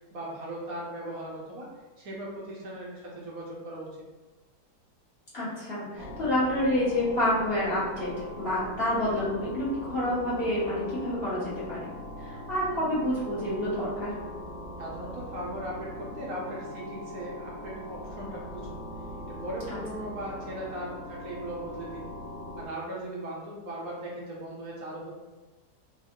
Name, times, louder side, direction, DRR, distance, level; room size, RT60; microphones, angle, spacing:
voice 1, 0.0-1.7 2.0-3.9 14.8-18.8 19.3-22.1 22.6-25.1, right 1 dB, 65° right, -5 dB, 1.2 m, -38 dB
voice 2, 5.3-11.9 12.2-14.1 19.7-19.8, left 1 dB, 40° left, -10 dB, 1.1 m, -28 dB
sound 1, 5.9-22.7, left 1 dB, 35° right, 0.3 m, -41 dB
3.5 x 2.0 x 3.5 m, 1.3 s
omnidirectional pair, 1.8 m